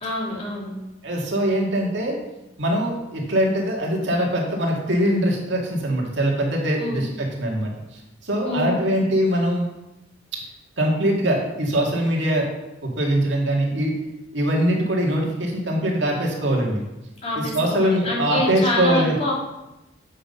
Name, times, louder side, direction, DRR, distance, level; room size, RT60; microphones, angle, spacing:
voice 1, 0.0-0.7 6.8-7.0 8.5-8.8 17.2-19.3, left 1 dB, 35° left, -3 dB, 2.0 m, -26 dB
voice 2, 1.0-2.2 2.6-7.7 8.2-9.6 10.3-10.4 10.8-12.5 12.8-14.0 14.3-16.8 17.4-19.1, right 1 dB, 70° right, -1 dB, 1.9 m, -22 dB
7.6 x 5.4 x 5.3 m, 0.95 s
head